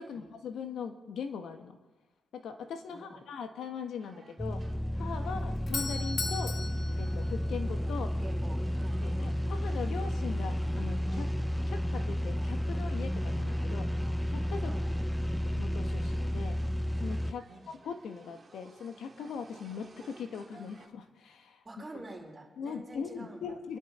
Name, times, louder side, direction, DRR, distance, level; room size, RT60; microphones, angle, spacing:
voice 1, 0.0-1.8 2.3-4.6 4.9-6.5 7.0-8.1 9.0-11.3 11.7-13.9 14.3-14.7 15.5-16.6 17.0-21.6 22.6-23.8, left 6 dB, 75° left, 7 dB, 1.6 m, -40 dB
voice 2, 2.9-3.3 4.2-4.3 5.2-5.6 8.0-9.2 14.6-14.9 17.4-17.7 21.6-23.5, right 2 dB, 25° right, -1 dB, 4.7 m, -48 dB
sound 1, 4.0-20.9, right 4 dB, 40° right, 1.9 m, -57 dB
sound 2, 4.4-17.3, equal, 5° left, 0.7 m, -32 dB
Doorbell, 5.3-8.1, left 4 dB, 50° left, 1.3 m, -38 dB
26.0 x 11.0 x 4.5 m, 1.2 s
supercardioid pair, 65°, 0 cm